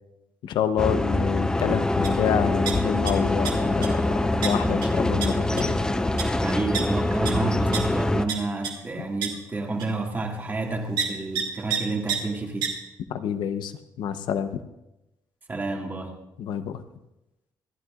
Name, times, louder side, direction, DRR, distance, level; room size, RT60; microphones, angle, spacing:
voice 1, 0.4-4.1 4.4-5.8 13.1-13.7 14.0-14.5 16.4-16.8, left 9 dB, 80° left, 10 dB, 0.9 m, -27 dB
sound 1, 0.8-8.2, left 1 dB, 10° left, 0.5 m, -24 dB
sound 2, 2.0-2.2 2.4-3.1 3.4-3.9 4.4-4.5 4.8-4.9 5.2-5.3 5.6-5.7 6.2-6.3 6.7-6.8 7.2-7.3 7.7-7.8 8.3-8.4 8.6-8.7 9.2-9.3 9.8-9.9 11.0-11.1 11.3-11.4 11.7-11.8 12.1-12.2 12.6-12.7, right 8 dB, 85° right, 2.3 m, -27 dB
voice 2, 6.4-12.7 15.5-16.1, right 3 dB, 25° right, 1 dB, 2.2 m, -30 dB
26.5 x 11.0 x 2.5 m, 0.94 s
cardioid pair, 130°, 8 cm